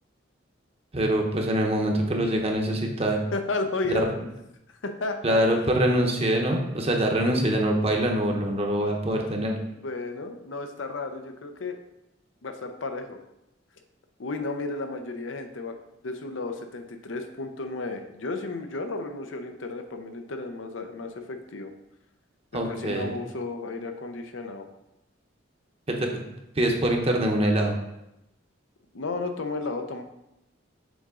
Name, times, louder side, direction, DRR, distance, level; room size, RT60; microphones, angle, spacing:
voice 1, 0.9-3.2 3.9-4.1 5.2-9.5 22.5-23.2 25.9-26.1 26.6-27.7, right 1 dB, 35° right, 2 dB, 0.9 m, -24 dB
voice 2, 3.3-4.1 4.8-5.4 9.8-11.8 12.4-13.2 14.2-15.7 16.0-21.7 22.5-24.7 28.9-30.0, left 3 dB, 85° left, 6 dB, 0.7 m, -33 dB
7.1 x 3.7 x 3.7 m, 0.87 s
head